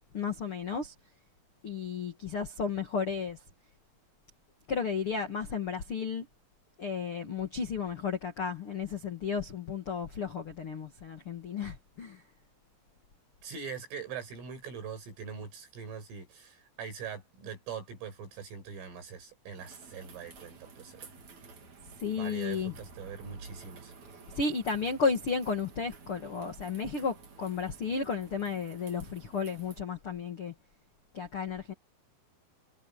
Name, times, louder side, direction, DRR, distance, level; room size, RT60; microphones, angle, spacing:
voice 1, 0.1-0.9 1.6-3.4 4.7-6.2 6.8-12.2 22.0-22.7 24.3-30.5 31.1-31.7, left 5 dB, 60° left, 1.4 m, -33 dB
voice 2, 13.4-21.1 22.1-23.9, right 6 dB, 75° right, 9.7 m, -42 dB
sound 1, 19.6-29.8, right 4 dB, 40° right, 3.9 m, -52 dB
omnidirectional pair, 5.8 m